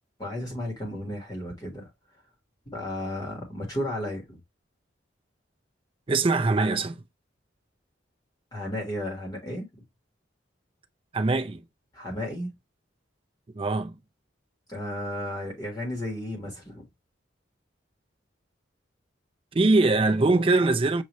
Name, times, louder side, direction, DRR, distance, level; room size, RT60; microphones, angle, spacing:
voice 1, 0.2-1.9 2.7-4.4 8.5-9.8 11.9-12.5 14.7-16.9, left 1 dB, 20° left, 1.3 m, -33 dB
voice 2, 6.1-7.0 11.1-11.6 13.5-14.0 19.5-21.0, right 3 dB, 30° right, 0.4 m, -22 dB
6.6 x 2.6 x 3.0 m
head